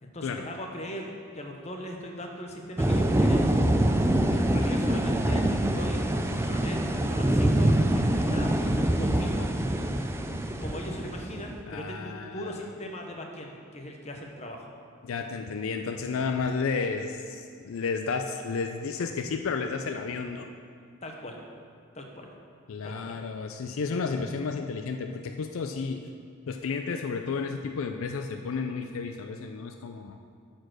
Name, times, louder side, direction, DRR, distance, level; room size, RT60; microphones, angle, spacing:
voice 1, 0.0-3.5 4.3-9.5 10.6-14.7 21.0-21.4 21.9-22.3 22.8-23.1, equal, 30° left, 2 dB, 0.8 m, -40 dB
sound 1, 2.8-11.6, right 1 dB, 10° right, 0.3 m, -25 dB
voice 2, 11.7-12.5 15.0-20.5 22.7-26.1 26.5-30.2, left 5 dB, 70° left, 5 dB, 0.4 m, -32 dB
9.4 x 4.5 x 6.1 m, 2.3 s
head